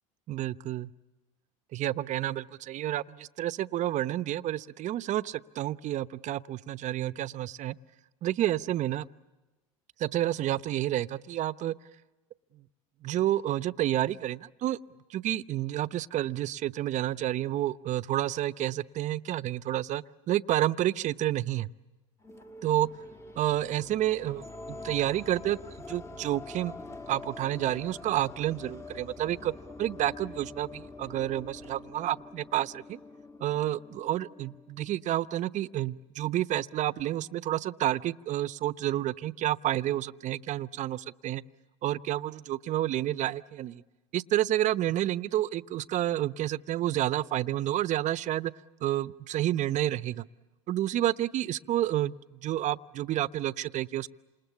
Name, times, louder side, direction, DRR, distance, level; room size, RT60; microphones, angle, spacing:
voice 1, 0.3-0.9 1.7-7.7 8.2-9.1 10.0-11.7 12.5-12.6 13.0-14.8 15.1-21.7 22.6-22.9 23.4-29.5 29.8-33.0 33.4-41.4 41.8-43.8 44.1-48.5 48.8-50.3 50.7-54.1, right 13 dB, 45° right, 15 dB, 0.9 m, -30 dB
sound 1, 22.2-35.1, left 2 dB, 15° left, 1.3 m, -45 dB
28.0 x 27.5 x 7.2 m, 1.2 s
hypercardioid pair, 90°, 17 cm